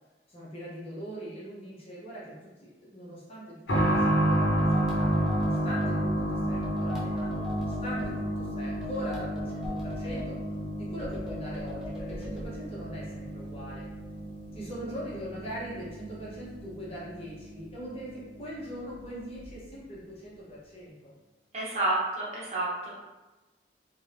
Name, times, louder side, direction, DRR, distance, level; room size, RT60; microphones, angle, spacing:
voice 1, 0.3-2.4 2.6-10.4 10.8-13.8 14.5-21.1, equal, 35° left, -7 dB, 0.8 m, -41 dB
sound 1, 3.7-18.1 18.4-18.5 19.4-19.5, right 1 dB, 85° left, 0.8 m, -30 dB
sound 2, 4.4-6.0 6.6-8.1 8.8-10.3 11.0-12.5, left 2 dB, 5° right, 0.5 m, -42 dB
voice 2, 21.5-23.0, right 2 dB, 40° right, -6 dB, 0.8 m, -30 dB
2.5 x 2.2 x 3.3 m, 1.1 s
head